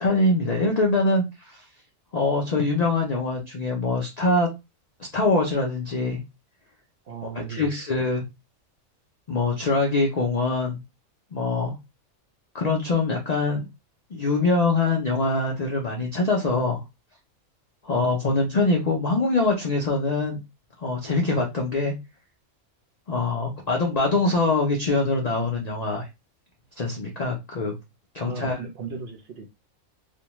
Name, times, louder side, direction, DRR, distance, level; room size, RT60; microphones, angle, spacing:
voice 1, 0.0-1.6 2.1-4.5 5.0-6.2 7.5-8.2 9.3-10.8 11.3-11.7 12.5-13.6 14.1-16.8 17.8-20.4 20.8-21.9 23.1-26.1 26.8-27.7 28.1-28.6, left 2 dB, 70° left, 0 dB, 0.4 m, -23 dB
voice 2, 7.0-7.7 28.2-29.5, right 5 dB, 65° right, 3 dB, 0.6 m, -36 dB
2.5 x 2.2 x 2.9 m, 0.23 s
omnidirectional pair, 1.4 m